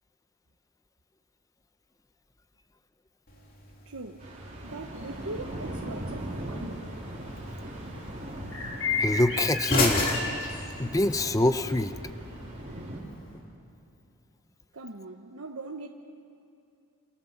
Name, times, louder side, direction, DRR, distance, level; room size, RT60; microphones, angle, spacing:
sound 1, 3.3-11.3, left 2 dB, 40° left, 3.4 m, -35 dB
voice 1, 3.8-4.3 4.6-6.9 14.7-15.9, right 2 dB, 75° right, 1.2 m, -41 dB
sound 2, 4.2-13.0, right 1 dB, 35° right, 4.2 m, -40 dB
sound 3, 4.9-13.4, left 3 dB, 65° left, 5.8 m, -36 dB
voice 2, 9.0-10.1 10.8-11.9, left 1 dB, 15° left, 0.7 m, -25 dB
29.5 x 28.0 x 7.3 m
head